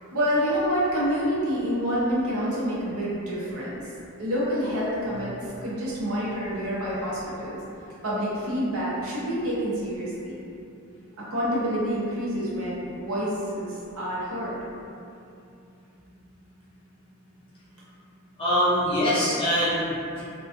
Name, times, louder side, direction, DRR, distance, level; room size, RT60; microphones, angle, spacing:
voice 1, 0.1-3.8 4.2-7.6 8.0-10.4 11.2-14.6, equal, 70° right, -8 dB, 0.7 m, -27 dB
voice 2, 18.4-20.2, equal, 25° left, -9 dB, 0.5 m, -23 dB
2.3 x 2.3 x 2.5 m, 2.6 s
head